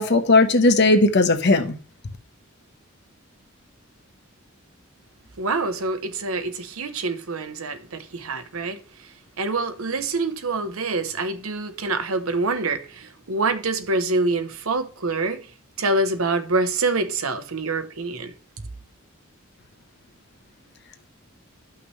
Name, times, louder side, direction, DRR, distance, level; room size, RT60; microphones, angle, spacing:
voice 1, 0.0-1.7, left 2 dB, 55° left, 0.9 m, -17 dB
voice 2, 5.4-8.8 9.4-15.4 15.8-18.3, right 3 dB, 80° right, 0.9 m, -26 dB
11.0 x 5.8 x 3.1 m
head